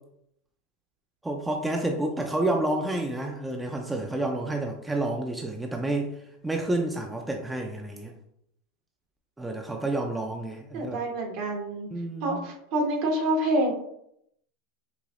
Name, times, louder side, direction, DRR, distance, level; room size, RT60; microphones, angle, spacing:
voice 1, 1.2-6.2 6.4-8.1 9.4-11.0 11.9-12.5, right 2 dB, 10° right, 2 dB, 0.4 m, -29 dB
voice 2, 10.7-11.9 12.2-13.7, right 1 dB, 60° right, 1 dB, 1.1 m, -27 dB
4.9 x 2.6 x 2.5 m, 0.75 s
hypercardioid pair, 110°, 0 cm